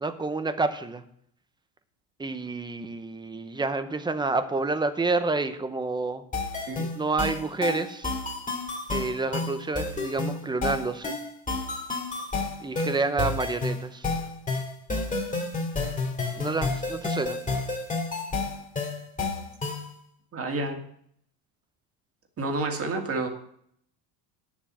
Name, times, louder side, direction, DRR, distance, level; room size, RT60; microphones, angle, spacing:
voice 1, 0.0-1.0 2.2-6.2 6.9-8.1 8.9-11.2 12.6-14.1 16.4-17.4, right 3 dB, 10° right, 10 dB, 0.7 m, -29 dB
sound 1, 6.3-19.9, left 3 dB, 15° left, 2.3 m, -31 dB
voice 2, 20.3-20.8 22.4-23.3, right 2 dB, 30° right, 4 dB, 2.0 m, -29 dB
9.3 x 7.3 x 7.5 m, 0.66 s
cardioid pair, 140°, 48 cm